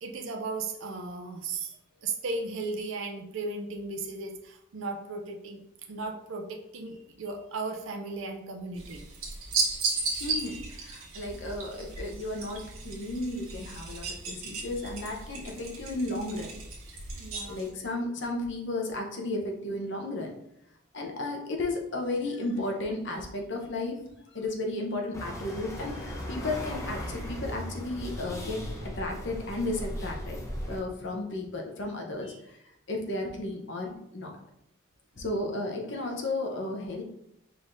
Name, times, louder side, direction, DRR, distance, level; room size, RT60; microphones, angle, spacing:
voice 1, 0.0-1.7 2.0-5.6 5.9-9.0 17.1-17.6 35.2-35.5, right 3 dB, 65° right, 3 dB, 0.5 m, -36 dB
sound 1, 8.8-17.7, right 4 dB, 85° right, 1.3 m, -35 dB
voice 2, 9.9-16.5 17.5-20.4 20.9-24.0 24.3-30.4 30.7-32.6 32.9-34.3 35.2-37.0, left 2 dB, 55° left, 1 dB, 0.8 m, -34 dB
sound 2, 25.1-30.8, equal, 15° left, 0.6 m, -37 dB
4.8 x 3.7 x 2.6 m, 0.77 s
head